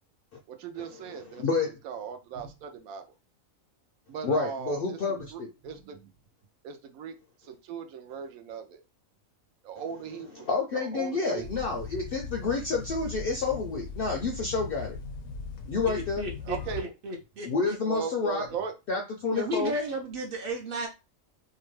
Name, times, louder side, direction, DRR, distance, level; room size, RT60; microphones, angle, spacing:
voice 1, 0.5-3.0 4.1-6.1 6.6-7.1 7.4-8.8 9.6-11.5 16.5-16.9 17.8-18.7, right 7 dB, 85° right, 7 dB, 1.0 m, -38 dB
voice 2, 1.0-1.7 4.2-5.5 10.4-15.0 15.7-16.2 17.4-18.5 18.9-19.7, left 4 dB, 70° left, 2 dB, 0.5 m, -29 dB
sound 1, 11.4-16.8, left 6 dB, 85° left, 1.0 m, -39 dB
voice 3, 15.9-18.0 19.3-20.9, right 1 dB, 55° right, 1 dB, 0.6 m, -34 dB
2.8 x 2.2 x 3.0 m, 0.27 s
omnidirectional pair, 1.4 m